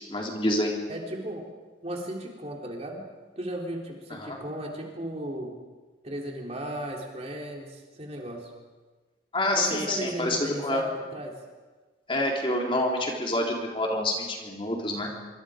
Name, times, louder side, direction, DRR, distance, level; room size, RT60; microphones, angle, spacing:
voice 1, 0.1-0.7 4.2-4.4 9.3-10.8 12.1-15.1, left 1 dB, 30° left, 0 dB, 3.6 m, -27 dB
voice 2, 0.9-1.5 1.8-3.0 3.4-5.6 6.0-8.5 9.5-11.4, right 1 dB, 35° right, 0 dB, 3.8 m, -35 dB
26.0 x 25.5 x 5.2 m, 1.3 s
head